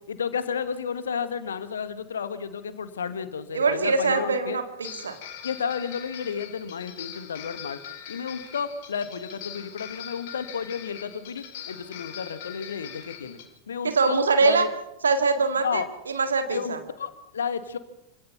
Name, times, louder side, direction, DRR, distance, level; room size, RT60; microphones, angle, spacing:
voice 1, 0.1-4.6 5.4-7.8 8.1-13.4 13.7-14.7 15.6-15.9 16.5-17.8, left 6 dB, 70° left, 12 dB, 1.6 m, -32 dB
voice 2, 3.5-5.2 13.8-14.7 15.0-16.8, right 4 dB, 70° right, 8 dB, 2.1 m, -23 dB
sound 1, 4.1-4.3 4.8-13.4, left 9 dB, 50° left, 3.4 m, -41 dB
26.5 x 17.0 x 5.8 m, 0.85 s
figure-of-eight pair, 90°, 0 cm